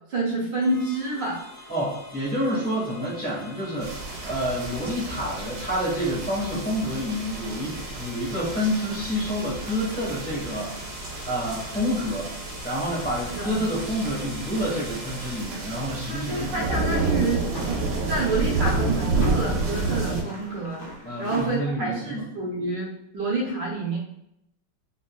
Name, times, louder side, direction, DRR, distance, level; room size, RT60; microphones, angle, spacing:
voice 1, 0.1-1.4 13.3-13.6 16.1-17.8 18.1-20.8 21.2-24.0, right 2 dB, 65° right, -3 dB, 1.3 m, -28 dB
sound 1, 0.6-15.4, left 1 dB, 60° left, 0.3 m, -45 dB
voice 2, 1.7-10.9 11.2-12.3 12.6-16.9 21.0-22.2, equal, 5° left, -9 dB, 0.6 m, -28 dB
sound 2, 3.8-20.2, right 3 dB, 85° right, 1.5 m, -30 dB
sound 3, 15.9-21.6, left 2 dB, 80° left, 0.7 m, -40 dB
3.5 x 2.4 x 2.2 m, 0.79 s
omnidirectional pair, 2.3 m